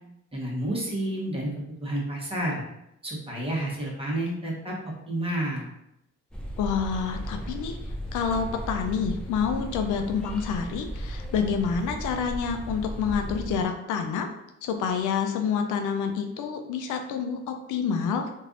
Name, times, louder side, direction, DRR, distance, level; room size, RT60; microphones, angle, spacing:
voice 1, 0.3-2.6 3.0-4.7 5.1-5.7, right 1 dB, 20° right, -4 dB, 1.2 m, -30 dB
sound 1, 6.3-13.6, equal, 5° left, 0.5 m, -36 dB
voice 2, 6.6-7.8 8.1-14.3 14.6-18.3, left 6 dB, 85° left, 5 dB, 0.5 m, -28 dB
3.2 x 2.6 x 2.5 m, 0.83 s
cardioid pair, 90°, 30 cm